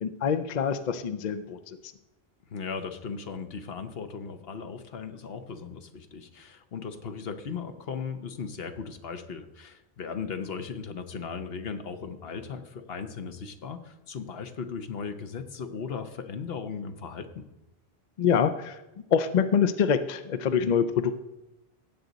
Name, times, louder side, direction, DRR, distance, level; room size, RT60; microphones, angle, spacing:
voice 1, 0.0-1.9 18.2-18.8 19.1-21.2, left 7 dB, 50° left, 10 dB, 0.6 m, -25 dB
voice 2, 2.5-17.4, left 5 dB, 70° left, 8 dB, 1.1 m, -37 dB
16.0 x 7.9 x 4.0 m, 0.94 s
omnidirectional pair, 1.0 m